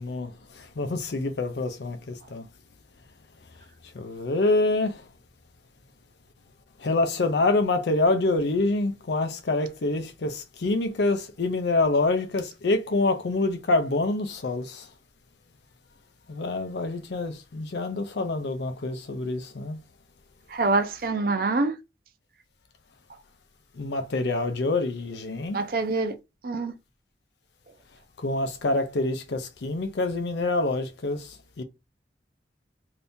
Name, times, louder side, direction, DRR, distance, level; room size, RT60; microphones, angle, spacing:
voice 1, 0.0-2.4 3.9-5.0 6.8-14.9 16.3-19.8 23.8-25.6 28.2-31.6, left 2 dB, 70° left, 0.5 m, -26 dB
voice 2, 20.5-21.7 25.5-26.1 26.4-26.7, right 3 dB, 50° right, 0.5 m, -25 dB
2.7 x 2.6 x 3.4 m
head